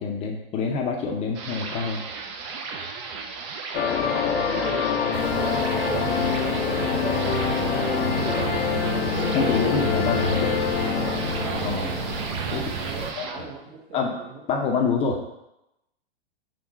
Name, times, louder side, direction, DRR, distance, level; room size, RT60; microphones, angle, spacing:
voice 1, 0.0-2.1 9.3-10.6 11.6-11.9 12.5-12.6 13.4-13.5 13.9-14.2 14.5-15.2, left 5 dB, 20° left, 1 dB, 0.5 m, -26 dB
sound 1, 1.3-13.3, right 4 dB, 30° right, 0.4 m, -35 dB
sound 2, 3.7-13.0, left 7 dB, 75° left, 0.6 m, -26 dB
voice 2, 4.0-7.3 7.6-8.8 11.4-12.0 12.5-14.4, right 4 dB, 45° right, 0 dB, 1.0 m, -39 dB
sound 3, 5.1-13.1, right 5 dB, 65° right, 0.7 m, -31 dB
3.7 x 2.2 x 4.1 m, 0.86 s
hypercardioid pair, 120°, 31 cm